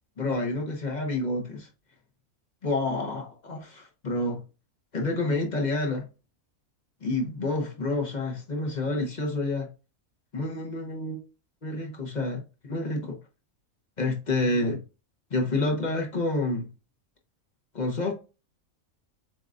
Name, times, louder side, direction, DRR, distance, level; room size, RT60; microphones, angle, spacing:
voice 1, 0.2-1.7 2.6-4.4 4.9-6.0 7.0-9.7 10.3-11.2 11.6-13.2 14.0-14.8 15.3-16.7 17.7-18.1, left 2 dB, 35° left, 0.9 m, -28 dB
7.5 x 2.5 x 2.4 m
omnidirectional pair, 1.5 m